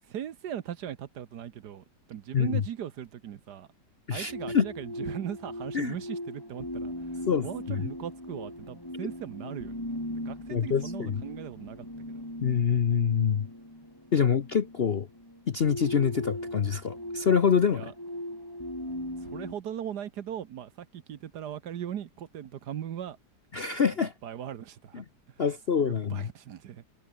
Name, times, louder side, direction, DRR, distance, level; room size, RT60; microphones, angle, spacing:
voice 1, 0.1-3.7 4.1-6.9 7.4-9.8 10.1-12.2 17.7-17.9 19.2-23.2 24.0-25.0 25.8-26.8, right 10 dB, 65° right, 1.5 m, -39 dB
voice 2, 4.1-4.6 5.7-6.0 7.3-7.8 10.5-11.2 12.4-13.5 14.1-15.1 15.5-17.9 23.5-24.1 24.9-25.0 25.4-26.3, left 7 dB, 50° left, 0.8 m, -26 dB
sound 1, 4.3-19.5, left 1 dB, 10° left, 5.3 m, -39 dB
omnidirectional pair, 2.0 m